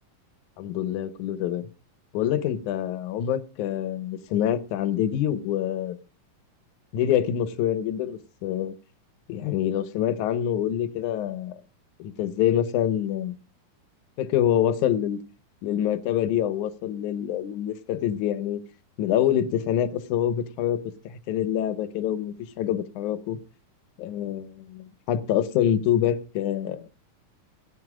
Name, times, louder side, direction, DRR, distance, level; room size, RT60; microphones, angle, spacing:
voice 1, 0.6-1.6 2.1-6.0 6.9-8.7 9.3-11.6 12.0-13.3 14.2-15.2 15.6-18.6 19.0-20.8 21.0-23.4 24.0-26.9, left 10 dB, 70° left, 2.3 m, -26 dB
18.0 x 9.1 x 5.0 m
omnidirectional pair, 4.0 m